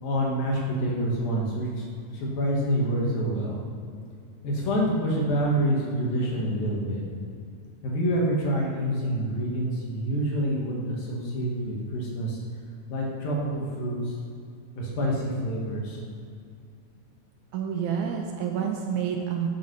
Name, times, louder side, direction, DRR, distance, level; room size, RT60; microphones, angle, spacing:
voice 1, 0.0-1.7 2.1-3.6 4.4-7.0 7.8-12.4 12.9-14.0 14.8-16.0, right 1 dB, 80° left, -3 dB, 3.6 m, -27 dB
voice 2, 17.5-19.5, right 8 dB, 75° right, 2 dB, 1.9 m, -28 dB
12.5 x 6.5 x 5.4 m, 2.4 s
omnidirectional pair, 4.1 m